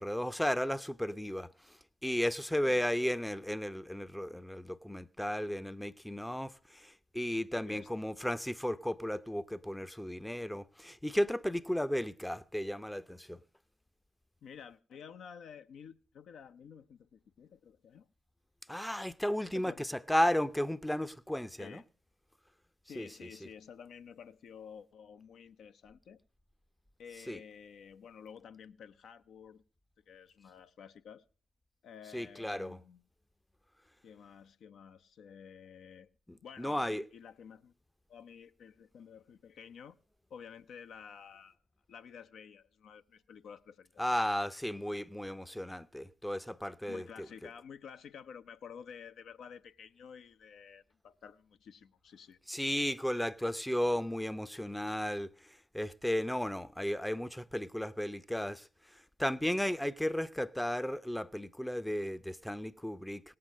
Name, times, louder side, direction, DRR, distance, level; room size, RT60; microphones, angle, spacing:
voice 1, 0.0-1.5 2.0-13.4 18.7-21.8 23.0-23.1 27.3-27.4 32.1-32.8 36.3-37.0 44.0-47.0 52.5-55.3 55.7-58.7 59.2-63.2, equal, 5° left, 0.6 m, -34 dB
voice 2, 7.6-8.1 14.4-18.1 19.5-19.9 21.6-21.8 22.9-26.2 27.0-29.6 30.1-31.2 31.8-33.0 34.0-36.1 36.4-37.7 38.1-40.0 40.3-41.6 41.9-44.1 46.9-52.4, left 7 dB, 65° left, 0.6 m, -51 dB
17.5 x 7.8 x 6.4 m
hypercardioid pair, 50°, 0 cm